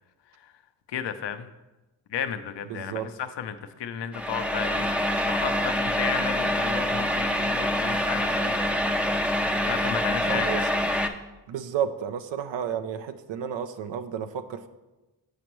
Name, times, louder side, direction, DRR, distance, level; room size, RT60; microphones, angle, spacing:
voice 1, 0.9-1.5 2.1-8.5 9.6-10.6, left 8 dB, 65° left, 9 dB, 0.6 m, -34 dB
voice 2, 2.7-3.1 10.2-10.7 11.5-14.7, right 8 dB, 65° right, 9 dB, 0.5 m, -32 dB
sound 1, 4.1-11.1, left 1 dB, 5° right, 0.5 m, -26 dB
8.2 x 5.1 x 3.0 m, 1.1 s
supercardioid pair, 40°, 47 cm